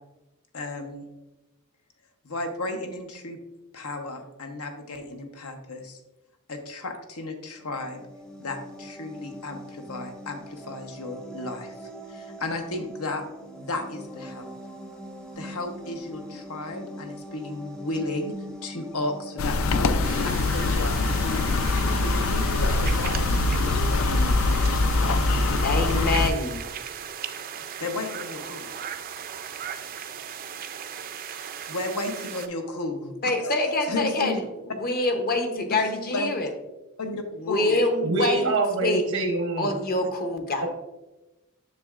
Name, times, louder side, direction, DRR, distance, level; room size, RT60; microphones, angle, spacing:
voice 1, 0.5-1.1 2.2-3.4 3.7-6.0 6.5-8.0 8.4-13.2 13.6-14.5 15.3-18.3 18.6-19.9 20.2-24.6 27.8-28.7 31.7-33.5 33.9-34.4 35.7-36.4 37.0-37.8, left 2 dB, 80° left, 5 dB, 0.9 m, -34 dB
sound 1, 7.6-21.2, equal, 5° left, 0.6 m, -43 dB
sound 2, 19.4-26.3, left 2 dB, 65° left, 0.4 m, -23 dB
sound 3, 20.0-32.5, right 8 dB, 40° right, 0.4 m, -37 dB
voice 2, 25.6-26.6 33.2-34.5 34.8-36.5 37.3-39.2 39.6-40.7, left 2 dB, 45° left, 5 dB, 0.8 m, -25 dB
voice 3, 38.0-39.7 40.6-40.7, right 3 dB, 80° right, 3 dB, 0.8 m, -25 dB
7.6 x 6.4 x 2.4 m, 1.0 s
head